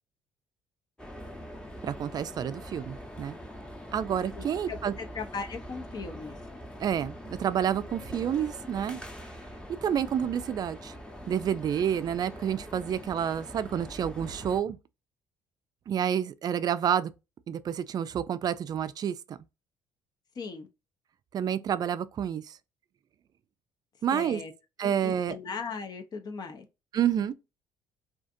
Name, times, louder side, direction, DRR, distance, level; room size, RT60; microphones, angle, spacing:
sound 1, 1.0-14.6, equal, 10° left, 0.8 m, -43 dB
voice 1, 1.8-3.4 3.9-4.9 6.8-9.0 9.8-10.9 11.3-14.8 15.9-17.1 17.5-19.4 21.3-22.6 24.0-24.4 24.8-25.4 26.9-27.3, right 9 dB, 45° right, 0.3 m, -29 dB
voice 2, 4.4-6.4 20.4-20.7 24.1-24.5 24.8-26.6, left 5 dB, 45° left, 0.6 m, -38 dB
2.4 x 2.4 x 2.5 m
hypercardioid pair, 65°, 9 cm